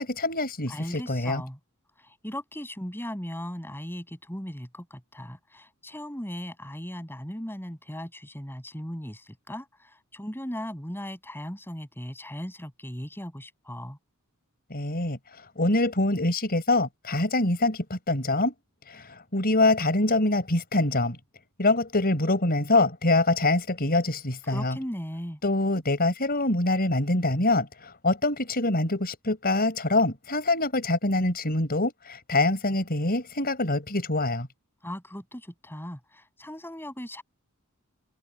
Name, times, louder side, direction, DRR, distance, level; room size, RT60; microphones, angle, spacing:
voice 1, 0.0-1.4 14.7-18.5 18.9-21.2 21.6-24.8 25.4-34.5, left 2 dB, 45° left, 5.2 m, -25 dB
voice 2, 0.7-1.6 2.0-14.0 24.5-25.4 34.8-37.2, equal, 10° left, 7.5 m, -38 dB
head